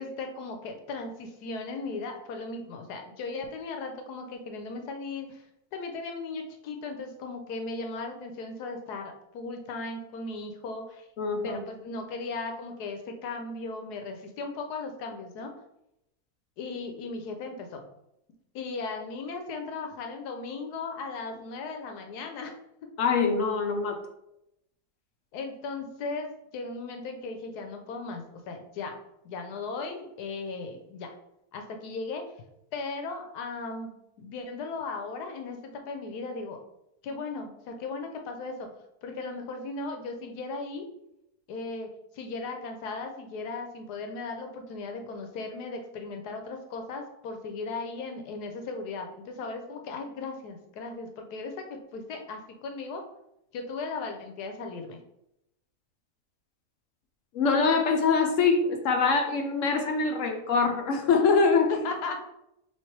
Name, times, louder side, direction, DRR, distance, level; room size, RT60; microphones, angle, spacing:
voice 1, 0.0-5.4 5.7-11.1 11.4-15.5 16.6-17.8 18.5-22.5 25.3-29.0 29.2-31.1 31.5-32.2 32.7-33.9 34.2-36.6 37.0-38.7 39.0-40.8 41.5-41.9 42.1-53.0 53.5-55.0 61.8-62.2, left 3 dB, 85° left, 4 dB, 1.3 m, -37 dB
voice 2, 11.2-11.6 23.0-24.0 57.3-61.8, left 4 dB, 65° left, 4 dB, 0.9 m, -24 dB
3.2 x 3.0 x 4.4 m, 0.83 s
omnidirectional pair, 1.6 m